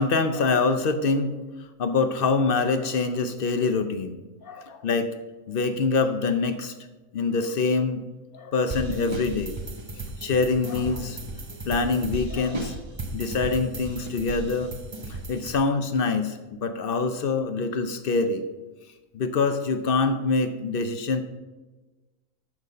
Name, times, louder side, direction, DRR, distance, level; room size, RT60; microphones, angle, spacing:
voice 1, 0.0-1.4 1.8-5.1 5.5-6.7 7.1-8.0 8.3-9.6 10.2-11.2 11.7-12.8 13.1-14.7 15.1-18.4 19.1-21.2, left 4 dB, 55° left, 8 dB, 0.6 m, -25 dB
sound 1, 8.7-15.6, right 2 dB, 35° right, 0.4 m, -35 dB
12.0 x 4.1 x 5.1 m, 1.2 s
omnidirectional pair, 1.6 m